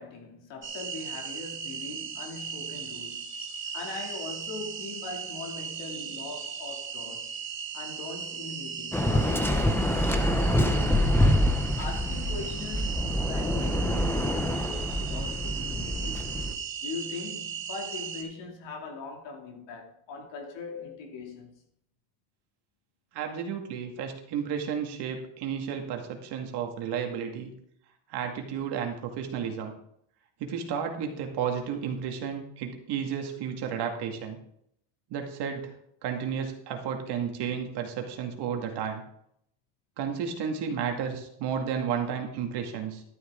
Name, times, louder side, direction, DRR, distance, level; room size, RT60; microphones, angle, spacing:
voice 1, 0.0-3.3 3.7-7.3 7.7-11.4 11.8-16.3 16.8-21.6, left 4 dB, 60° left, 2.8 m, -41 dB
sound 1, 0.6-18.2, right 7 dB, 25° right, 2.2 m, -37 dB
Waves surf, 8.9-16.5, left 1 dB, 5° left, 0.7 m, -26 dB
voice 2, 23.1-27.5 28.1-29.7 30.4-34.4 35.1-35.7 36.0-39.0 40.0-43.0, right 7 dB, 55° right, 2.2 m, -32 dB
12.5 x 11.0 x 3.8 m
cardioid pair, 150°, 49 cm